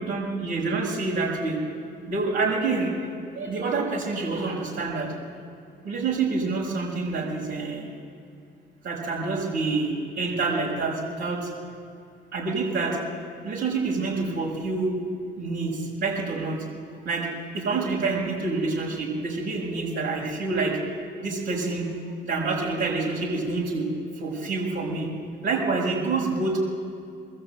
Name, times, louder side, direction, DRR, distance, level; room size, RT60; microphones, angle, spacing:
voice 1, 0.0-1.6 2.1-2.9 3.3-5.1 5.8-7.9 8.8-11.5 12.3-13.0 13.4-15.0 15.4-16.6 17.0-17.3 17.5-20.8 21.2-21.9 22.2-25.1 25.4-26.6, right 3 dB, 75° right, -4 dB, 6.2 m, -27 dB
22.5 x 20.5 x 9.0 m, 2.4 s
cardioid pair, 90°, 20 cm